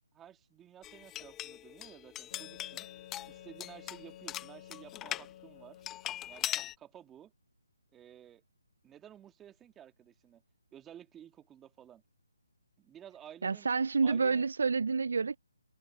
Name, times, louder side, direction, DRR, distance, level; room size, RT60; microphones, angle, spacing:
voice 1, 0.1-2.9 3.3-5.8 6.3-7.3 7.9-8.4 8.8-10.4 10.7-12.0 12.8-13.7 14.0-14.5, right 10 dB, 10° right, 2.1 m, -53 dB
sound 1, 0.8-5.3 5.8-6.7, left 13 dB, 15° left, 0.7 m, -40 dB
Wind instrument woodwind instrument, 2.3-6.4, left 11 dB, 35° left, 2.7 m, -52 dB
voice 2, 13.4-15.4, right 4 dB, 65° right, 0.4 m, -28 dB
figure-of-eight pair, 155°, 0 cm